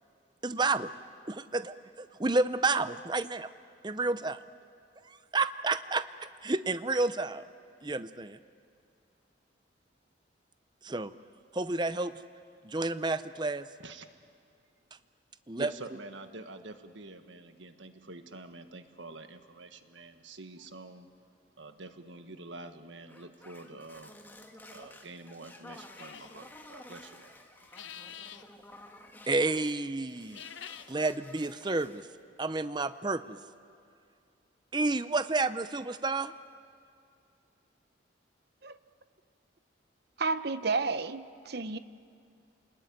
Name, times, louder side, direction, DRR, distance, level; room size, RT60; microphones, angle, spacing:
voice 1, 0.4-0.9 1.3-3.5 3.8-4.4 5.1-7.4 7.8-8.4 10.8-11.1 11.5-12.2 12.6-13.7 15.5-15.7 29.3-30.4 30.9-32.1 32.4-33.4 34.7-36.3, right 3 dB, 25° right, 12 dB, 0.6 m, -30 dB
voice 2, 15.6-21.1 21.6-24.2 24.7-27.4, right 2 dB, 75° right, 8 dB, 1.6 m, -47 dB
sound 1, 23.1-29.8 30.1-32.1, left 1 dB, 10° left, 1.5 m, -52 dB
sound 2, 26.0-26.4 27.6-28.5 30.2-30.9, left 9 dB, 80° left, 0.9 m, -46 dB
voice 3, 40.2-41.8, right 4 dB, 55° right, 12 dB, 0.8 m, -31 dB
29.5 x 20.5 x 9.5 m, 2.4 s
head